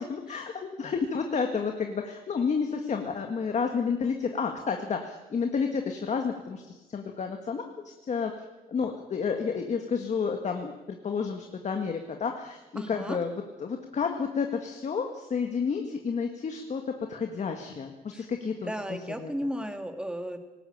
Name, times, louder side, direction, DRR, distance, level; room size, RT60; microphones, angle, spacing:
voice 1, 0.0-8.3 8.7-13.3 13.6-16.8 17.1-18.7 19.2-19.3, left 5 dB, 50° left, 4 dB, 1.8 m, -30 dB
voice 2, 12.8-13.2 18.1-20.4, equal, 5° right, 7 dB, 2.1 m, -35 dB
19.5 x 18.5 x 8.8 m, 1.1 s
cardioid pair, 135°, 16 cm